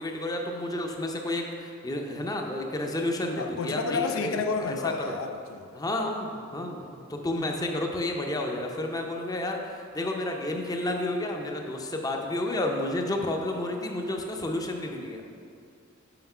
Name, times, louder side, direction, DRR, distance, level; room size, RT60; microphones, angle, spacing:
voice 1, 0.0-4.4 4.7-5.1 5.7-15.2, left 1 dB, 20° left, 2 dB, 0.5 m, -31 dB
voice 2, 3.4-5.8, left 4 dB, 80° left, 6 dB, 0.4 m, -31 dB
5.8 x 5.0 x 5.4 m, 2.4 s
head